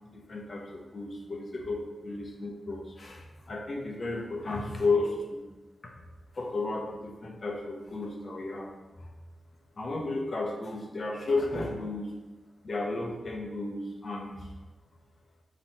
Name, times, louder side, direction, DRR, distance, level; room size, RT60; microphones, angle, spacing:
voice 1, 0.1-5.4 5.8-5.9 6.3-8.7 9.0-9.1 9.8-12.1 12.6-14.5, left 3 dB, 50° left, 0 dB, 0.8 m, -33 dB
3.7 x 2.9 x 4.3 m, 1.2 s
cardioid pair, 60°, 0 cm